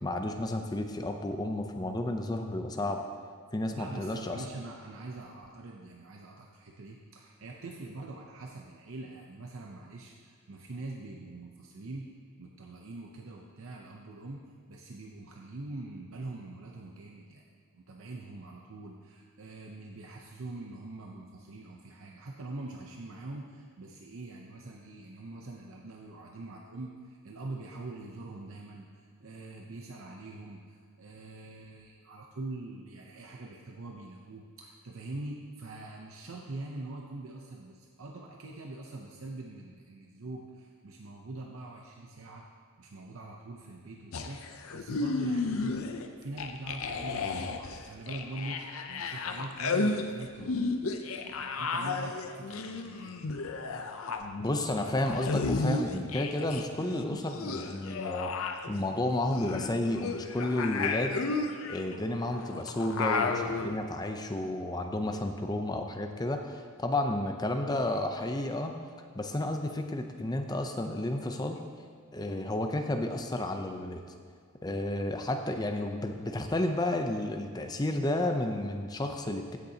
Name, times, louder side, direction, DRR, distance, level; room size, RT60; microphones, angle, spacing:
voice 1, 0.0-3.0 3.5-4.4 54.4-58.3 58.7-61.2 61.7-68.7 69.1-71.6 72.1-74.0 74.6-79.6, left 1 dB, 20° left, 5 dB, 0.5 m, -32 dB
voice 2, 3.7-12.1 12.4-17.4 17.7-42.5 42.8-45.8 46.2-53.2, right 2 dB, 65° right, 0 dB, 0.7 m, -43 dB
sound 1, 44.1-46.1 46.4-56.6 56.9-63.8, left 3 dB, 70° left, 0.6 m, -33 dB
15.5 x 6.8 x 2.8 m, 2.1 s
head